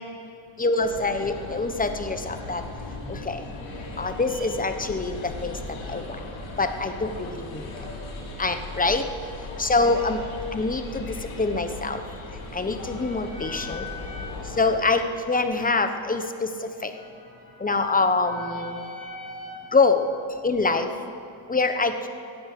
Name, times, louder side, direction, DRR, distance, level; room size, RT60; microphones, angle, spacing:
voice 1, 0.6-2.6 3.1-3.4 4.0-5.6 5.9-6.0 6.6-7.6 8.4-9.0 9.6-10.2 10.5-12.0 12.5-13.9 14.6-16.9 17.6-18.8 19.7-20.1 20.4-20.9 21.5-22.1, left 3 dB, 15° left, 8 dB, 1.1 m, -25 dB
sound 1, 0.8-14.8, left 2 dB, 70° left, 5.0 m, -38 dB
voice 2, 11.9-12.2 12.7-14.6 16.8-17.7 18.2-19.8, left 1 dB, 15° right, -2 dB, 2.1 m, -41 dB
16.5 x 11.0 x 7.7 m, 2.5 s
cardioid pair, 105°, 49 cm